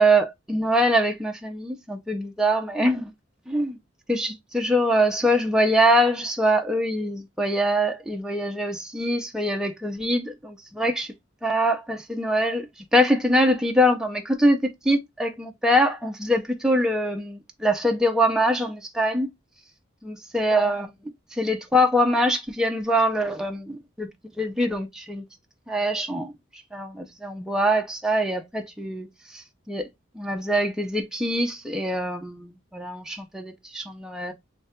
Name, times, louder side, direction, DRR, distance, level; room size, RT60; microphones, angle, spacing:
voice 1, 0.0-3.1 3.5-3.8 4.1-11.1 11.4-12.7 12.9-19.3 20.0-20.9 21.3-24.1 24.4-25.2 25.7-26.3 26.7-29.1 29.3-29.9 30.2-34.3, equal, 5° right, 0.5 m, -23 dB
3.2 x 2.3 x 4.2 m
head